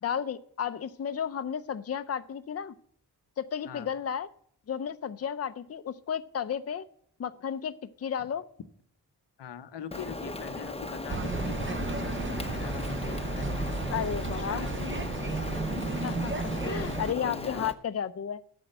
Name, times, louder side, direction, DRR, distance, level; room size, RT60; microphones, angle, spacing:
voice 1, 0.0-2.7 3.4-4.3 4.7-6.9 7.2-8.5 13.9-14.7 16.0-18.4, left 8 dB, 35° left, 12 dB, 0.5 m, -33 dB
voice 2, 9.4-15.2 16.6-17.7, left 9 dB, 85° left, 11 dB, 0.8 m, -44 dB
Rain, 9.9-17.7, left 2 dB, 15° left, 0.8 m, -37 dB
sound 1, 11.1-17.1, right 3 dB, 30° right, 0.7 m, -33 dB
8.7 x 6.5 x 7.7 m, 0.62 s
cardioid pair, 60°, 41 cm